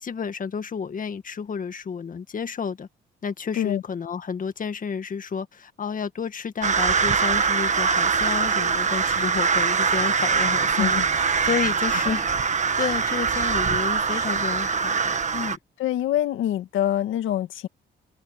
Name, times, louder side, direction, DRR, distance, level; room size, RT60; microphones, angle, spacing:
voice 1, 0.0-2.9 3.2-12.3 12.8-15.6, left 6 dB, 45° left, 1.8 m, -31 dB
sound 1, 6.6-15.6, right 5 dB, 35° right, 1.6 m, -23 dB
voice 2, 15.8-17.7, left 12 dB, 80° left, 1.9 m, -25 dB
open air
cardioid pair, 90°, 20 cm